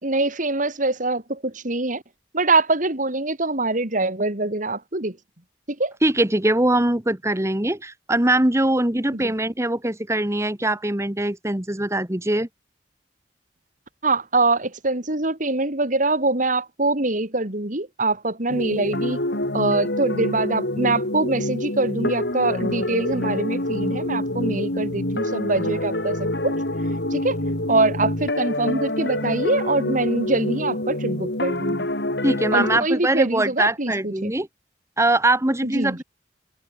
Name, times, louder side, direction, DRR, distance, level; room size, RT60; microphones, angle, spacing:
voice 1, 0.0-2.0 2.3-5.2 5.7-5.9 9.1-9.3 14.0-19.2 19.5-26.6 27.1-27.4 27.7-31.9 32.5-34.3 35.6-36.0, right 2 dB, 45° right, 3.1 m, -24 dB
voice 2, 6.0-12.5 32.2-34.5 35.0-36.0, right 1 dB, 15° right, 1.4 m, -22 dB
sound 1, 18.5-32.8, left 1 dB, 70° left, 4.4 m, -26 dB
head